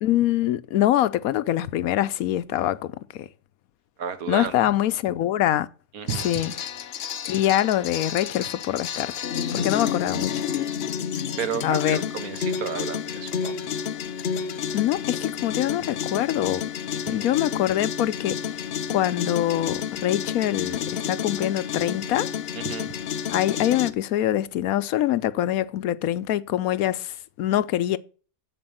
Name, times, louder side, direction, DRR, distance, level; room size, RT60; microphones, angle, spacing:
voice 1, 0.0-3.3 4.3-5.7 6.2-6.5 7.3-9.2 9.5-10.4 11.6-12.1 14.7-16.6 17.1-18.6 18.9-22.3 23.3-28.0, left 12 dB, 85° left, 1.1 m, -24 dB
voice 2, 4.0-4.5 5.9-6.3 9.7-9.8 11.4-13.6 16.9-17.3 22.5-22.9, right 8 dB, 90° right, 1.6 m, -32 dB
sound 1, 6.1-23.9, left 8 dB, 55° left, 0.8 m, -30 dB
7.9 x 6.9 x 7.8 m
omnidirectional pair, 1.5 m